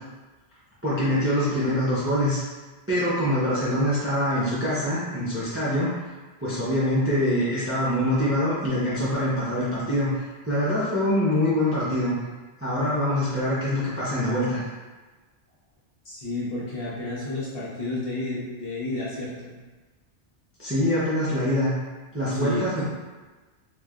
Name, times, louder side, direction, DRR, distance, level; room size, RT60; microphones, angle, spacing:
voice 1, 0.8-2.4 2.9-5.9 6.4-12.2 12.6-14.6 20.6-21.7 22.1-22.8, left 1 dB, 15° right, -9 dB, 0.5 m, -24 dB
voice 2, 16.0-19.5 22.3-22.7, left 2 dB, 55° left, -8 dB, 1.1 m, -31 dB
3.1 x 2.9 x 2.4 m, 1.3 s
omnidirectional pair, 1.2 m